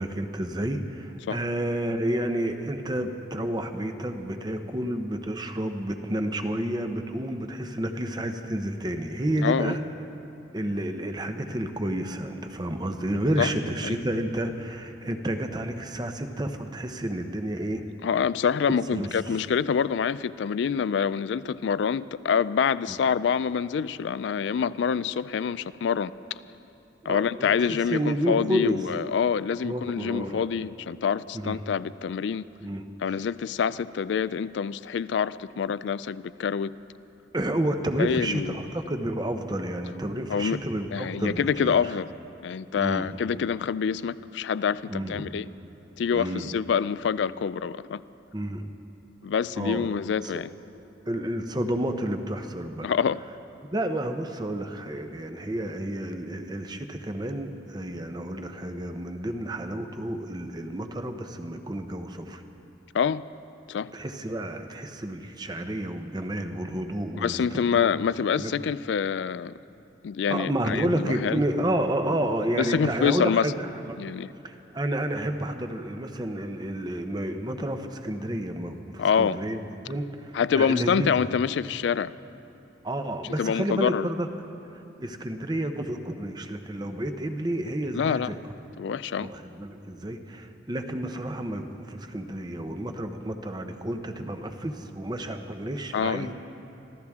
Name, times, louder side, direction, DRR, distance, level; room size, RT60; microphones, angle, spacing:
voice 1, 0.0-9.8 10.5-17.8 18.9-19.5 27.1-28.8 29.6-30.5 31.3-31.6 32.6-32.9 37.3-42.0 42.7-43.2 44.9-45.3 46.1-46.5 48.3-48.7 49.6-49.9 50.2-50.4 51.1-52.9 53.7-62.4 63.9-67.9 68.4-68.5 70.3-74.0 74.4-79.6 79.8-81.1 82.8-84.3 84.7-88.4 89.2-96.3, right 1 dB, 20° right, 7 dB, 0.8 m, -30 dB
voice 2, 9.4-9.8 13.4-13.5 13.8-14.0 18.0-26.1 27.1-32.5 33.0-36.7 38.0-38.5 40.3-40.6 40.9-42.1 42.4-45.4 46.0-48.0 49.2-50.5 52.8-53.2 62.9-63.2 63.7-63.9 67.2-69.5 70.0-71.4 72.6-73.5 74.0-74.3 79.0-79.4 80.3-82.1 83.4-84.1 87.9-88.3 88.8-89.3 95.9-96.3, left 7 dB, 70° left, 17 dB, 0.3 m, -26 dB
25.0 x 15.5 x 3.6 m, 2.9 s
head